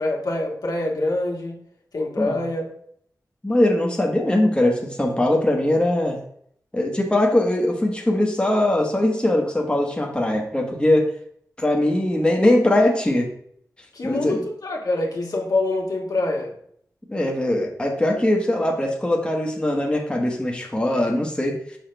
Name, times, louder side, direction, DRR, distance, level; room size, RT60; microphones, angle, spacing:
voice 1, 0.0-1.6 1.9-2.7 13.9-16.5, left 2 dB, 75° left, -1 dB, 1.7 m, -25 dB
voice 2, 3.4-6.2 6.7-11.1 11.6-13.3 14.0-14.4 17.1-21.6, left 1 dB, 15° left, 1 dB, 1.2 m, -21 dB
6.1 x 5.5 x 3.3 m, 0.65 s
wide cardioid pair, 70°, 7 cm